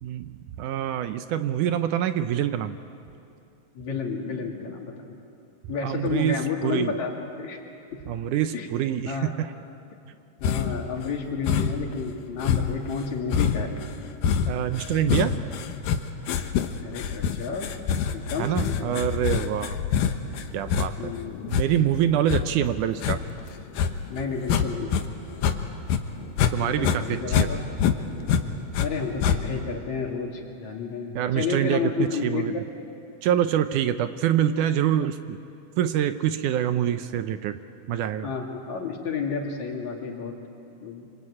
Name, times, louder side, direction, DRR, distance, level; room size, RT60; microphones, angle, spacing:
voice 1, 0.0-2.8 5.8-6.9 8.1-9.5 14.5-15.4 18.4-19.8 20.5-21.1 21.5-23.2 26.5-27.5 31.2-32.5 33.2-35.4 35.8-37.6 37.9-38.3, right 10 dB, 75° right, 10 dB, 2.2 m, -25 dB
voice 2, 3.8-5.2 5.7-7.6 8.5-8.7 9.1-9.3 10.4-13.7 16.8-17.7 18.1-19.0 21.0-21.5 24.1-25.1 26.6-27.6 28.8-32.7 38.2-40.4 40.8-41.1, left 5 dB, 60° left, 1 dB, 3.7 m, -31 dB
sound 1, 10.4-10.9 11.5-11.9 12.4-25.0 25.3-26.5 26.8-28.9 29.2-29.7, left 7 dB, 85° left, 2.8 m, -26 dB
26.5 x 26.0 x 8.7 m, 2.6 s
omnidirectional pair, 3.8 m